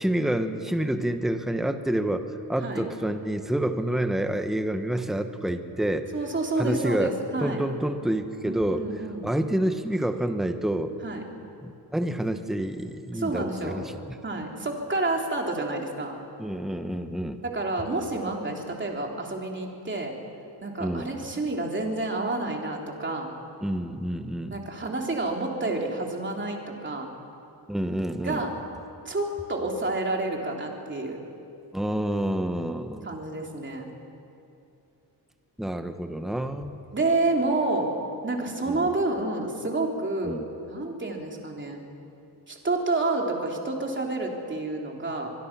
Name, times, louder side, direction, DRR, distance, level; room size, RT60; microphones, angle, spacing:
voice 1, 0.0-6.1 6.6-7.1 7.4-11.0 11.6-13.9 16.4-17.4 20.8-21.1 23.6-24.6 27.7-28.4 31.7-33.1 35.6-36.8 38.7-38.9 40.2-40.4, right 1 dB, ahead, 7 dB, 1.1 m, -28 dB
voice 2, 6.1-7.6 8.4-9.3 11.0-11.2 13.1-13.8 14.2-16.2 17.4-20.2 20.6-23.3 24.5-27.1 28.2-28.5 29.0-31.2 33.0-33.9 36.9-37.9 38.2-40.4 40.6-41.8 42.5-45.3, right 2 dB, 25° right, 1 dB, 3.3 m, -29 dB
24.5 x 22.5 x 6.0 m, 2.6 s
wide cardioid pair, 115°, 41 cm